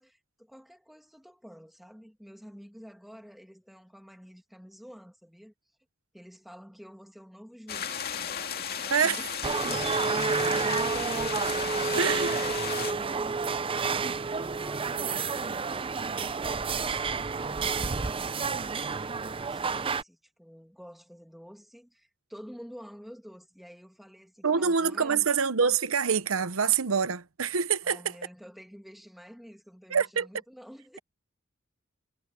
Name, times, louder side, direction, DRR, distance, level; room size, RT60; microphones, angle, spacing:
voice 1, 0.0-5.5 6.1-10.0 14.6-17.0 17.4-18.4 19.2-25.3 27.8-31.0, equal, ahead, 2.4 m, -49 dB
sound 1, 7.7-12.9, left 8 dB, 50° left, 2.2 m, -35 dB
voice 2, 8.9-9.3 11.9-12.5 24.4-28.1 29.9-30.3, right 6 dB, 85° right, 0.9 m, -26 dB
sound 2, 9.4-20.0, right 4 dB, 25° right, 0.5 m, -30 dB
head